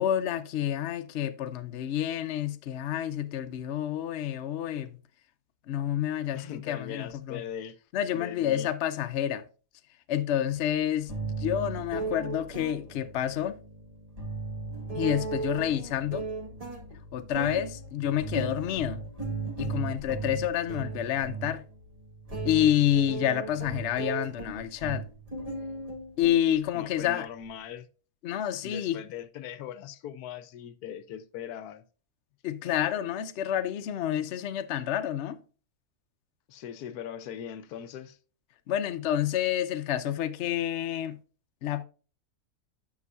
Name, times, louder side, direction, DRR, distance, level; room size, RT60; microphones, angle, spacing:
voice 1, 0.0-5.0 5.7-7.4 7.9-9.5 10.1-13.6 14.9-16.3 17.1-19.0 19.6-21.6 22.4-25.1 26.2-27.3 28.2-29.0 32.4-35.4 38.7-41.2 41.6-41.8, left 11 dB, 60° left, 0.7 m, -29 dB
voice 2, 6.3-7.8 8.1-8.7 26.7-27.9 28.6-31.8 36.5-38.2, left 9 dB, 80° left, 1.1 m, -40 dB
sound 1, 10.5-10.6 11.1-27.0, right 3 dB, 25° right, 1.8 m, -36 dB
9.5 x 6.1 x 2.3 m
omnidirectional pair, 1.7 m